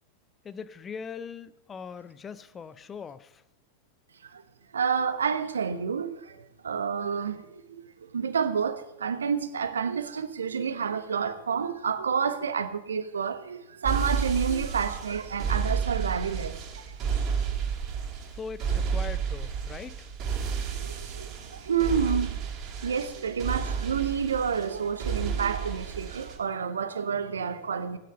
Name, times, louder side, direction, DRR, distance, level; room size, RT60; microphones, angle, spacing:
voice 1, 0.4-3.4 18.3-20.0, left 6 dB, 20° left, 0.6 m, -40 dB
voice 2, 4.7-17.0 20.6-22.4 22.8-28.0, right 6 dB, 70° right, 1.1 m, -29 dB
sound 1, 13.8-26.4, right 6 dB, 35° right, 2.8 m, -31 dB
17.0 x 9.3 x 5.4 m
figure-of-eight pair, 90°, 0 cm